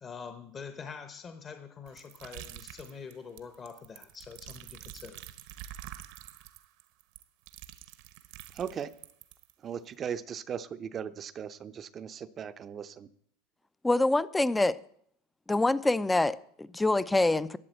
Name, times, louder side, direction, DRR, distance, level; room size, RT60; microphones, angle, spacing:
voice 1, 0.0-5.3, left 6 dB, 25° left, 1.0 m, -45 dB
sound 1, 1.9-9.5, right 13 dB, 65° right, 1.1 m, -47 dB
voice 2, 8.5-8.9 9.6-13.1, right 8 dB, 30° right, 0.7 m, -38 dB
voice 3, 13.8-14.8 15.5-17.6, left 2 dB, 10° left, 0.5 m, -25 dB
12.0 x 7.6 x 8.9 m
supercardioid pair, 130°, 0 cm